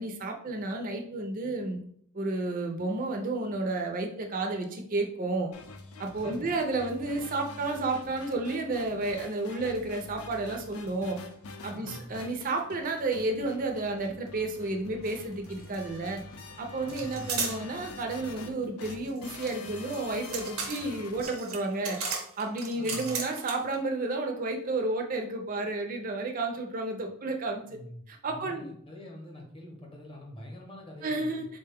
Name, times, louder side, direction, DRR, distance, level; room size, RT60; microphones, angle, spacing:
voice 1, 0.0-1.8 2.1-5.5 6.0-11.2 11.6-16.2 16.6-22.0 22.4-27.8 28.1-28.7 31.0-31.4, right 2 dB, 40° right, 3 dB, 0.5 m, -31 dB
sound 1, 5.5-21.2, left 3 dB, 85° left, 0.4 m, -46 dB
voice 2, 6.1-6.5 11.7-12.1 16.8-17.5 22.7-23.2 27.7-31.5, equal, 25° left, 0 dB, 0.8 m, -45 dB
sound 2, 15.0-15.2 15.4-16.2 16.9-17.6 18.8-23.8, right 5 dB, 80° right, 0.8 m, -36 dB
3.8 x 2.2 x 3.4 m, 0.63 s
head